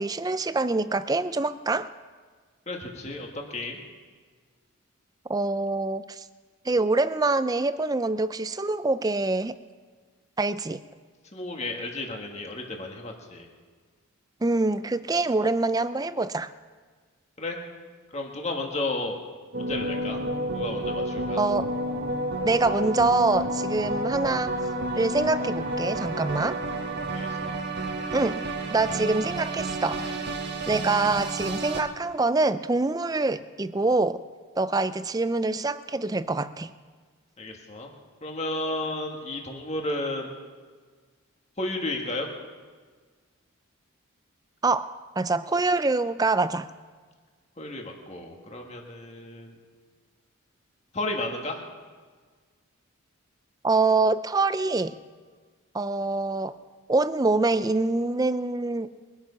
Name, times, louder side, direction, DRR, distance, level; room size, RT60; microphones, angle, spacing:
voice 1, 0.0-1.9 5.3-6.2 6.6-9.5 10.4-10.8 14.4-16.5 21.4-21.7 22.4-24.5 24.9-26.6 28.1-30.3 30.7-34.2 34.6-36.7 44.6-46.7 53.6-54.9 55.7-56.6 56.9-58.9, right 3 dB, 15° right, 13 dB, 0.4 m, -25 dB
voice 2, 2.7-3.8 11.3-13.5 17.4-17.6 18.1-19.2 19.6-20.2 20.5-21.4 27.1-27.6 37.4-37.9 38.2-40.3 41.6-42.3 47.6-49.6 50.9-51.6, left 2 dB, 30° left, 1 dB, 1.7 m, -33 dB
sound 1, 19.5-31.8, right 1 dB, 50° right, 1.5 m, -30 dB
22.5 x 8.9 x 5.7 m, 1.5 s
head